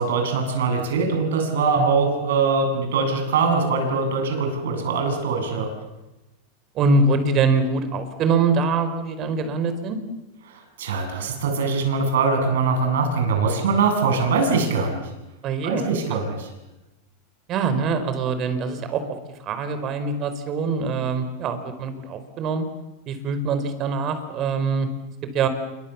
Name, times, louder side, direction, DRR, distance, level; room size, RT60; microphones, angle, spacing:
voice 1, 0.0-5.7 10.5-15.0 15.6-16.5, right 4 dB, 85° right, 4 dB, 7.7 m, -22 dB
voice 2, 6.7-10.0 15.4-15.8 16.1-16.2 17.5-22.7 23.1-24.9 25.3-25.5, right 4 dB, 40° right, 10 dB, 4.6 m, -23 dB
28.0 x 24.5 x 7.2 m, 1.0 s
supercardioid pair, 135°, 0 cm